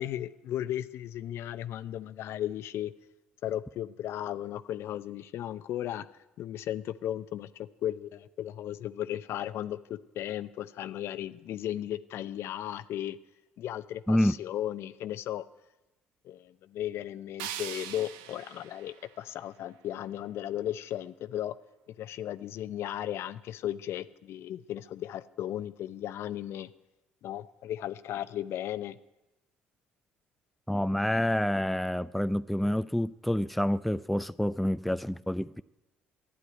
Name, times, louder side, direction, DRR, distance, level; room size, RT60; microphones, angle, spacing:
voice 1, 0.0-2.9 3.4-6.1 6.4-13.2 13.6-15.5 16.2-21.6 22.0-26.7 27.2-29.0, left 12 dB, 65° left, 0.6 m, -35 dB
sound 1, 17.4-20.4, right 10 dB, 85° right, 0.8 m, -43 dB
voice 2, 30.7-35.6, left 1 dB, ahead, 0.4 m, -28 dB
12.0 x 9.6 x 9.4 m
hypercardioid pair, 60°, 5 cm